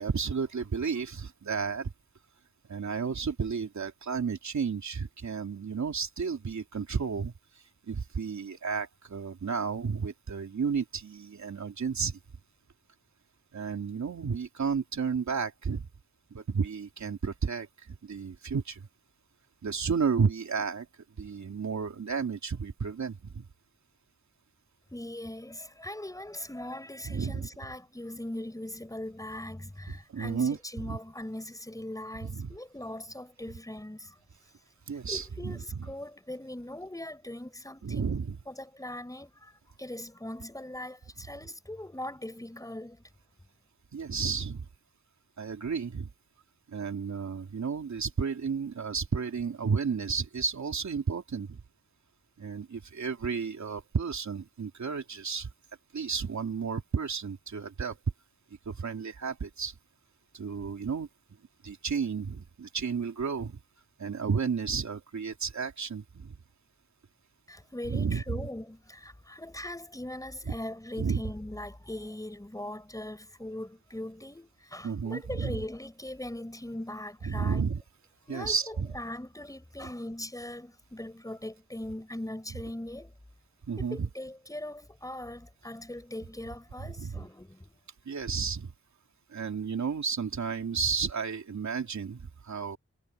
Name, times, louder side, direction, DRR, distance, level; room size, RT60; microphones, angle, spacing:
voice 1, 0.0-1.9 2.7-7.3 7.9-12.2 13.5-15.9 16.3-17.7 18.0-18.9 19.6-20.9 21.2-23.4 27.0-27.5 30.1-30.6 30.8-31.0 32.2-32.5 34.9-35.9 37.8-38.4 43.9-44.7 45.4-46.1 46.7-51.6 52.4-55.5 55.9-58.0 58.6-59.7 60.3-61.1 61.6-63.6 64.0-66.4 67.9-68.4 70.5-70.6 71.0-71.2 74.8-75.6 77.3-77.8 78.3-78.9 83.7-84.1 86.8-87.2 88.0-88.7 89.3-92.8, right 5 dB, 75° right, 3.2 m, -32 dB
voice 2, 24.9-34.2 35.1-38.2 38.5-43.0 67.5-77.7 78.3-83.1 83.8-87.8, left 1 dB, 10° left, 4.8 m, -40 dB
wide cardioid pair, 125°, 29 cm